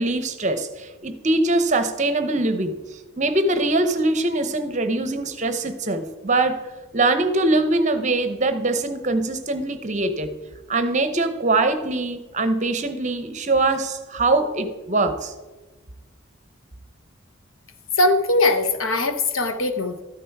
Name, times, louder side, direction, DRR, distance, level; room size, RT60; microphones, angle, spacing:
voice 1, 0.0-10.3 10.7-15.3, right 2 dB, 35° right, 10 dB, 0.8 m, -23 dB
voice 2, 18.0-20.0, left 2 dB, 80° left, 8 dB, 1.1 m, -20 dB
13.0 x 10.0 x 4.6 m, 1.2 s
head